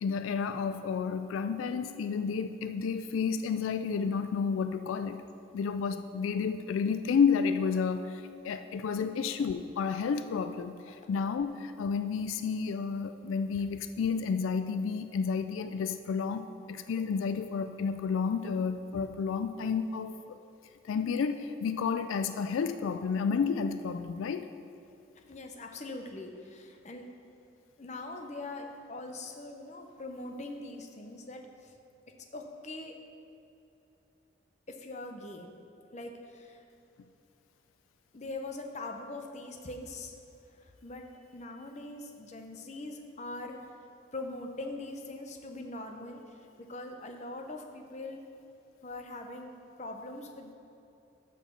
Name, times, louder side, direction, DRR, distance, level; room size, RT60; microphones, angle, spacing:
voice 1, 0.0-5.2 5.5-20.4 20.8-24.5, left 5 dB, 85° left, 10 dB, 0.3 m, -31 dB
voice 2, 25.2-27.1 27.8-31.7 32.3-33.0 34.7-35.5 35.9-36.6 38.1-40.2 40.5-43.6 44.1-48.3 48.8-49.5 49.8-50.5, left 2 dB, 35° left, 4 dB, 0.7 m, -42 dB
6.3 x 5.7 x 7.0 m, 2.8 s
head